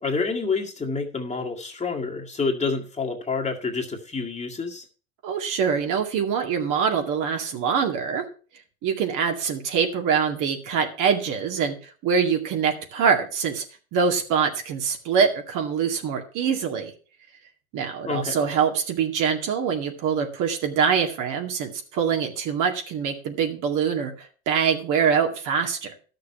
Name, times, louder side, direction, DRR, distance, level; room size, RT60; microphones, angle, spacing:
voice 1, 0.0-4.8 18.0-18.4, left 4 dB, 15° left, 0 dB, 2.1 m, -28 dB
voice 2, 5.2-8.2 8.8-13.6 13.9-16.9 17.7-26.0, right 6 dB, 50° right, 4 dB, 2.2 m, -24 dB
11.5 x 6.7 x 5.7 m, 0.38 s
hypercardioid pair, 100°, 40 cm